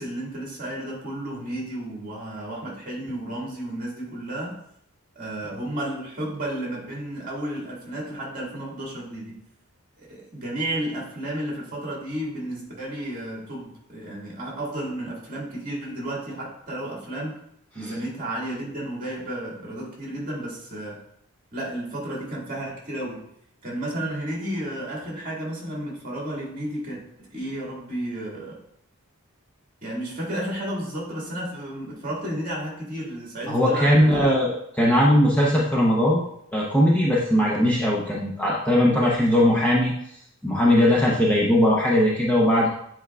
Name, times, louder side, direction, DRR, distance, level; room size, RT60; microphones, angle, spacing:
voice 1, 0.0-4.6 5.1-9.4 10.0-17.4 17.7-21.0 21.5-23.3 23.6-28.6 29.8-34.4, right 1 dB, 35° right, -4 dB, 2.0 m, -32 dB
voice 2, 33.5-36.2 36.5-39.9 40.4-42.7, left 1 dB, 5° left, -5 dB, 0.7 m, -19 dB
8.9 x 4.5 x 2.4 m, 0.72 s
head